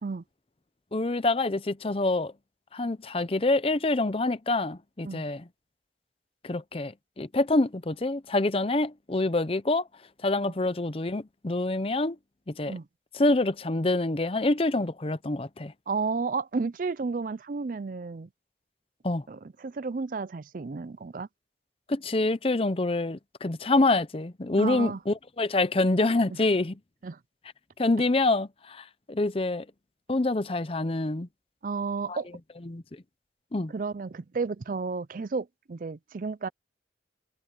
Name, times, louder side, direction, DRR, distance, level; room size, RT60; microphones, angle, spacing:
voice 1, 0.9-2.3 2.7-5.4 6.4-9.9 10.2-12.2 12.5-12.7 13.1-15.7 19.0-19.2 21.9-26.8 27.8-29.7 30.1-31.3 32.1-32.2 32.7-32.8 33.5-33.7, left 2 dB, 30° left, 0.7 m, -26 dB
voice 2, 15.9-18.3 19.3-21.3 24.6-25.0 27.0-27.2 31.6-32.3 33.7-36.5, right 4 dB, 50° right, 0.4 m, -32 dB
head